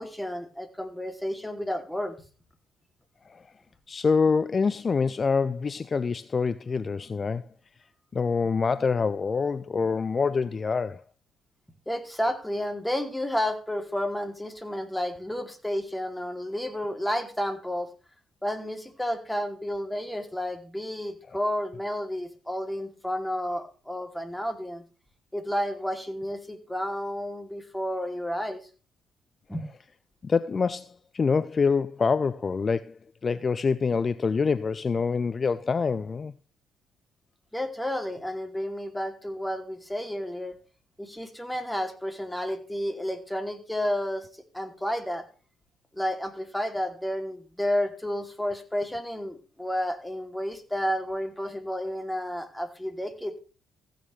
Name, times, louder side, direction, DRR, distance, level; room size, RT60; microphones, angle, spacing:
voice 1, 0.0-2.1 11.9-17.9 18.4-24.8 25.3-28.6 29.5-29.6 37.5-40.6 41.0-44.3 44.5-45.2 45.9-53.4, equal, 5° left, 2.6 m, -31 dB
voice 2, 3.9-7.5 8.1-11.0 30.2-32.9 33.2-36.3, left 5 dB, 40° left, 0.4 m, -26 dB
15.5 x 8.9 x 3.2 m
hypercardioid pair, 50°, 0 cm